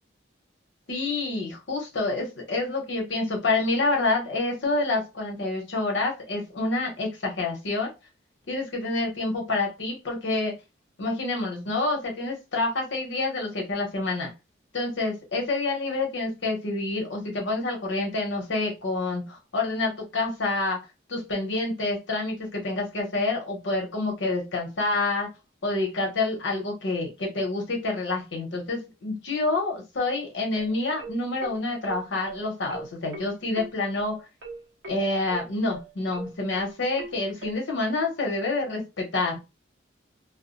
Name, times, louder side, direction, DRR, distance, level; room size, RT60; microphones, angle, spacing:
voice 1, 0.9-7.9 8.5-10.5 11.0-14.3 14.7-20.8 21.1-25.3 25.6-34.2 34.9-39.4, left 2 dB, 85° left, 0 dB, 0.9 m, -28 dB
sound 1, 30.6-37.6, right 2 dB, 80° right, 0.8 m, -40 dB
2.3 x 2.1 x 2.5 m, 0.26 s
head